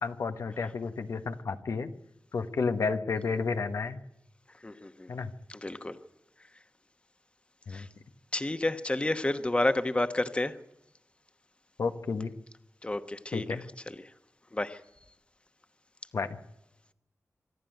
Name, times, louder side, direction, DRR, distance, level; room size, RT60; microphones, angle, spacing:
voice 1, 0.0-1.9 2.3-4.0 5.1-5.3 7.7-7.9 11.8-12.3 13.3-13.6 16.1-16.4, left 4 dB, 85° left, 7 dB, 1.2 m, -31 dB
voice 2, 4.6-5.1 5.5-6.0 7.7-7.9 8.3-10.6 12.8-13.5 13.9-14.0 14.5-14.8, left 2 dB, 20° left, 10 dB, 1.1 m, -30 dB
25.5 x 11.5 x 9.1 m, 0.89 s
wide cardioid pair, 90°, 5 cm